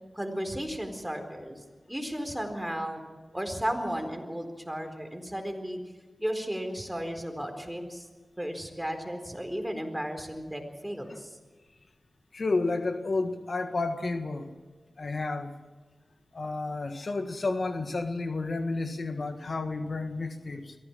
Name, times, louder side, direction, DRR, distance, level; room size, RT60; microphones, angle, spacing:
voice 1, 0.1-1.6 1.9-3.0 3.3-5.8 6.2-8.1 8.4-11.3, equal, 5° right, 5 dB, 4.3 m, -34 dB
voice 2, 12.3-14.5 15.0-15.5 16.3-20.8, left 3 dB, 60° left, 7 dB, 1.6 m, -31 dB
23.0 x 16.0 x 7.4 m, 1.3 s
cardioid pair, 55°, 0 cm